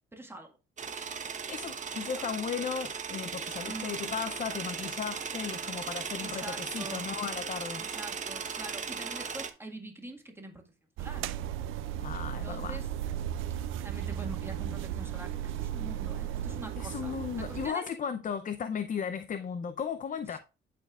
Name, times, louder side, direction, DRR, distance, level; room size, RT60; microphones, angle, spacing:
voice 1, 0.1-0.6 1.9-2.2 3.6-4.2 6.2-7.1 7.8-10.7 11.0-11.3 12.4-12.9 13.8-17.9 20.2-20.4, right 1 dB, 10° right, 1.7 m, -45 dB
sound 1, 0.8-9.5, right 6 dB, 40° right, 0.9 m, -37 dB
voice 2, 1.5-7.8 12.0-12.8 16.8-20.4, left 7 dB, 40° left, 0.6 m, -36 dB
sound 2, 11.0-17.7, right 10 dB, 85° right, 0.5 m, -35 dB
11.5 x 4.4 x 2.4 m
cardioid pair, 90°, 20 cm